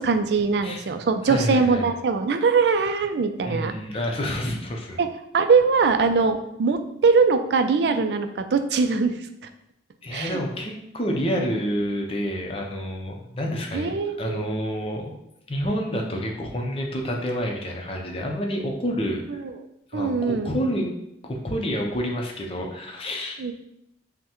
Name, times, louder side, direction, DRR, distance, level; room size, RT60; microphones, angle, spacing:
voice 1, 0.0-3.7 5.0-5.1 5.3-9.2 10.1-10.4 13.7-14.5 19.4-19.5 19.9-20.5 23.4-23.5, right 4 dB, 70° right, 8 dB, 0.4 m, -22 dB
voice 2, 1.2-1.9 3.5-5.0 10.0-15.1 15.5-19.4 19.9-20.9 21.3-23.4, equal, 35° left, 1 dB, 0.6 m, -28 dB
5.5 x 2.1 x 3.0 m, 0.81 s
head